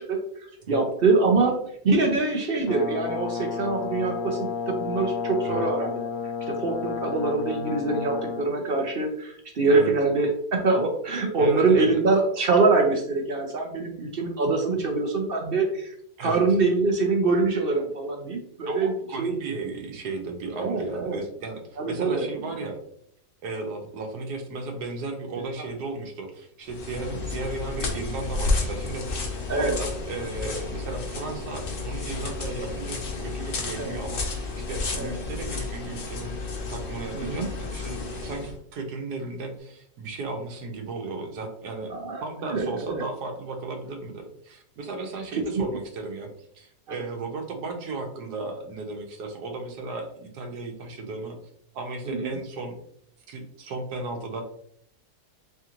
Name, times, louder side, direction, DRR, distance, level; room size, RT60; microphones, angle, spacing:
voice 1, 0.0-5.9 6.5-15.9 16.2-18.9 19.2-19.6 20.5-21.2 21.8-22.2 29.5-29.8 33.8-34.0 34.9-35.1 37.1-37.5 41.9-43.0 45.3-45.6 52.1-52.3, right 3 dB, 55° right, 2 dB, 0.6 m, -24 dB
Brass instrument, 2.7-8.5, left 6 dB, 70° left, 1.0 m, -31 dB
voice 2, 11.4-12.0 16.2-16.4 18.7-22.8 23.4-29.2 29.5-36.4 36.7-41.9 42.2-46.3 46.5-51.4 51.7-52.8 53.3-54.4, right 3 dB, 80° right, 4 dB, 1.4 m, -35 dB
sound 1, 26.6-38.6, left 3 dB, 50° left, 0.7 m, -31 dB
3.7 x 3.5 x 2.9 m, 0.67 s
omnidirectional pair, 1.7 m